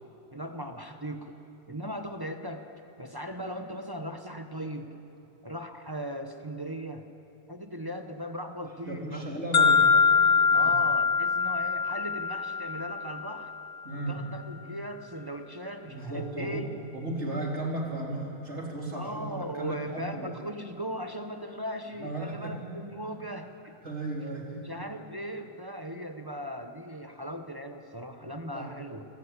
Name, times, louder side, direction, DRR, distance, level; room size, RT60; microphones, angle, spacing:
voice 1, 0.3-1.3 1.7-2.7 3.0-4.9 5.4-7.1 7.5-9.9 10.5-13.5 13.9-16.7 18.9-23.7 24.6-29.0, equal, 20° right, 6 dB, 0.7 m, -38 dB
voice 2, 8.9-9.9 10.5-10.7 13.8-14.2 15.9-16.6 16.9-20.3 22.0-22.7 23.8-24.7 28.5-28.7, right 2 dB, 40° right, -2 dB, 3.7 m, -35 dB
sound 1, 9.5-13.5, left 5 dB, 50° left, 1.5 m, -23 dB
25.0 x 15.5 x 8.2 m, 2.8 s
omnidirectional pair, 1.9 m